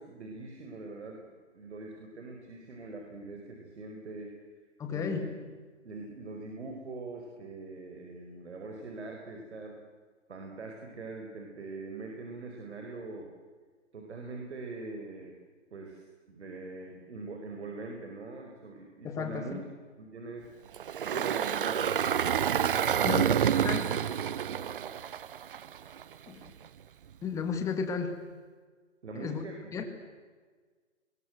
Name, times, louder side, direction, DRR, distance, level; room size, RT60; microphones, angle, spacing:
voice 1, 0.0-4.4 4.9-5.4 5.8-9.8 10.3-13.3 13.9-15.4 15.7-19.6 20.0-20.5 21.0-22.0 22.6-23.3 23.8-25.0 29.0-29.9, right 3 dB, 65° right, 2 dB, 4.9 m, -43 dB
voice 2, 4.8-5.3 19.0-19.6 23.0-23.3 23.6-23.9 26.3-26.4 27.2-28.2 29.2-29.4 29.7-29.9, left 6 dB, 10° left, 6 dB, 1.9 m, -33 dB
Engine, 20.7-26.0, right 9 dB, 45° right, 0.7 m, -28 dB
29.5 x 22.0 x 8.0 m, 1.5 s
hypercardioid pair, 155°, 37 cm